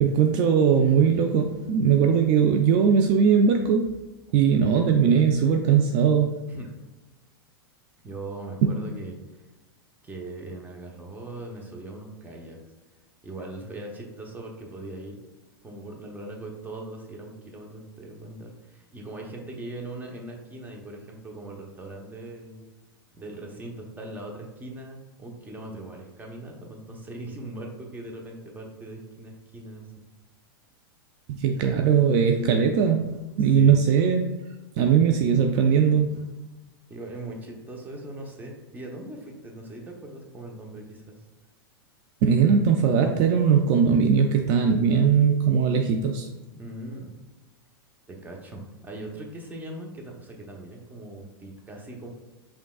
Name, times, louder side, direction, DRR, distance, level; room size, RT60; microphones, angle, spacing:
voice 1, 0.0-3.9 4.3-6.3 31.3-34.2 34.8-36.3 42.2-46.3, right 7 dB, 45° right, 4 dB, 0.4 m, -20 dB
voice 2, 8.0-9.2 10.0-12.6 13.2-15.2 15.6-22.6 23.1-30.0 33.4-33.8 36.9-41.2 46.5-47.1 48.1-52.1, right 2 dB, 15° right, 0 dB, 0.9 m, -40 dB
5.2 x 3.4 x 2.3 m, 1.1 s
hypercardioid pair, 110°, 13 cm